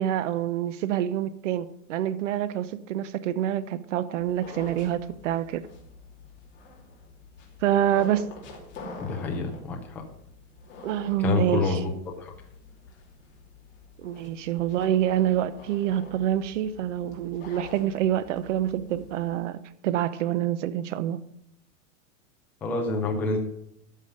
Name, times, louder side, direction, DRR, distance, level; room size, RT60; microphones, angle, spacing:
voice 1, 0.0-5.6 7.6-8.3 10.8-11.8 14.0-21.2, right 11 dB, 60° right, 0.9 m, -27 dB
sound 1, 4.2-19.4, left 3 dB, 25° left, 2.8 m, -46 dB
voice 2, 9.0-10.0 11.2-11.9 12.2-12.3 22.6-23.4, left 4 dB, 5° left, 0.4 m, -27 dB
13.0 x 5.6 x 6.6 m
supercardioid pair, 165°, 42 cm